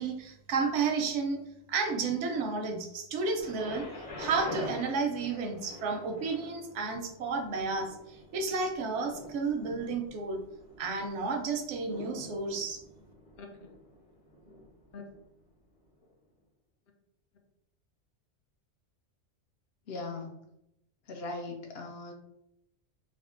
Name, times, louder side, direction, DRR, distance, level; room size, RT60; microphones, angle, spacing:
voice 1, 0.0-1.4 1.7-3.9 4.2-10.4 10.8-12.8, right 4 dB, 85° right, 5 dB, 0.9 m, -32 dB
Thunder, 3.4-15.2 16.0-16.1, left 1 dB, 35° left, 0.8 m, -46 dB
voice 2, 19.9-20.4 21.1-22.1, left 3 dB, 65° left, 3 dB, 0.7 m, -39 dB
3.4 x 2.4 x 2.5 m, 0.80 s
omnidirectional pair, 1.2 m